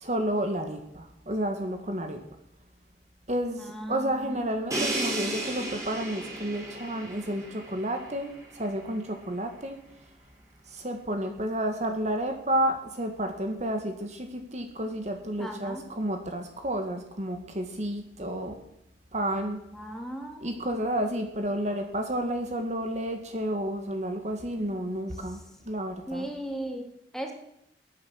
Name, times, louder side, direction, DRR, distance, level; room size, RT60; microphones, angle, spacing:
voice 1, 0.0-2.2 3.3-9.8 10.7-18.6 19.1-19.6 20.4-25.4 25.6-26.3, right 1 dB, 40° right, 5 dB, 1.9 m, -31 dB
voice 2, 3.6-4.4 15.4-15.8 19.7-20.5 26.1-27.3, right 1 dB, ahead, 2 dB, 2.7 m, -37 dB
Crash cymbal, 4.7-8.5, right 2 dB, 20° right, 4.5 m, -34 dB
21.0 x 9.5 x 6.5 m, 0.79 s
head